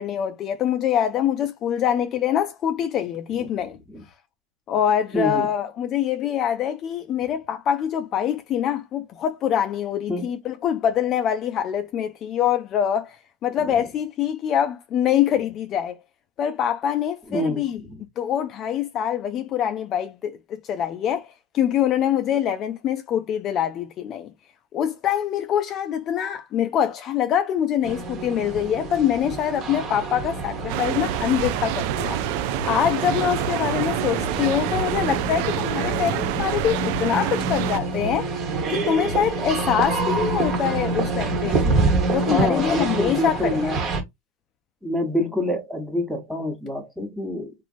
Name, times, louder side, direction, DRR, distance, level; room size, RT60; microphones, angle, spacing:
voice 1, 0.0-3.8 4.7-13.2 13.4-16.0 16.4-17.8 18.2-21.3 21.5-24.3 24.7-32.2 32.6-38.3 38.7-43.7, left 9 dB, 35° left, 0.3 m, -24 dB
voice 2, 5.1-5.5 10.1-10.3 17.3-18.0 35.9-36.0 41.1-41.2 42.2-43.8 44.8-47.5, left 1 dB, ahead, 0.9 m, -27 dB
sound 1, 27.8-44.0, right 3 dB, 40° right, 1.1 m, -27 dB
sound 2, 30.7-37.8, right 13 dB, 60° right, 0.3 m, -27 dB
sound 3, 31.6-42.0, equal, 90° right, 1.0 m, -37 dB
2.9 x 2.6 x 2.4 m
supercardioid pair, 130°, 0 cm